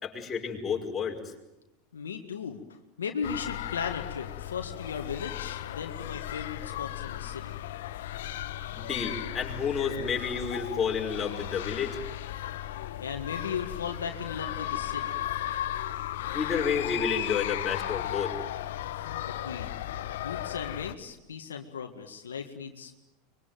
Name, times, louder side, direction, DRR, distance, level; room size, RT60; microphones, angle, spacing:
voice 1, 0.0-1.2 8.8-12.0 16.3-18.3, left 6 dB, 25° left, 0 dB, 5.6 m, -30 dB
voice 2, 1.9-7.5 13.0-15.1 19.3-19.7 20.2-23.0, left 6 dB, 90° left, 5 dB, 1.8 m, -37 dB
sound 1, 3.2-20.9, left 12 dB, 75° left, 1.1 m, -35 dB
24.5 x 22.5 x 9.3 m, 0.95 s
hypercardioid pair, 95°, 0 cm